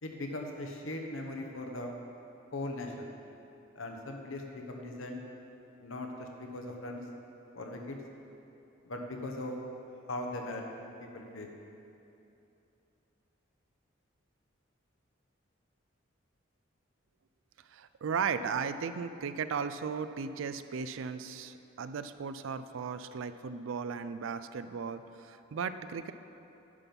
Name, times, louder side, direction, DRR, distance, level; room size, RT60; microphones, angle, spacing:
voice 1, 0.0-1.9 2.5-3.1 3.7-5.2 5.8-7.0 7.5-8.0 8.8-9.5 10.1-10.6 11.0-11.5, left 2 dB, 80° left, 2 dB, 1.0 m, -39 dB
voice 2, 17.7-26.1, right 6 dB, 70° right, 11 dB, 0.4 m, -36 dB
9.8 x 5.3 x 5.8 m, 2.8 s
head